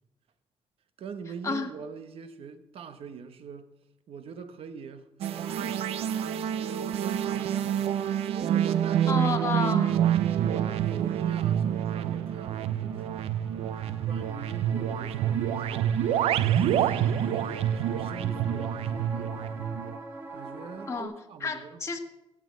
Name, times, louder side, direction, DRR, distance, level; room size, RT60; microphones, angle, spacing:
voice 1, 1.0-3.7 4.1-5.1 5.5-6.0 6.5-8.0 8.3-9.4 10.3-13.4 14.1-16.0 16.5-19.4 20.3-21.8, right 6 dB, 70° right, 1.0 m, -43 dB
sound 1, 5.2-20.0, right 10 dB, 90° right, 0.5 m, -27 dB
sound 2, 5.3-21.0, right 2 dB, 20° right, 2.2 m, -46 dB
voice 2, 9.1-10.0 20.9-21.1 21.4-22.0, left 4 dB, 30° left, 1.4 m, -30 dB
16.5 x 6.1 x 7.6 m
cardioid pair, 100°, 10 cm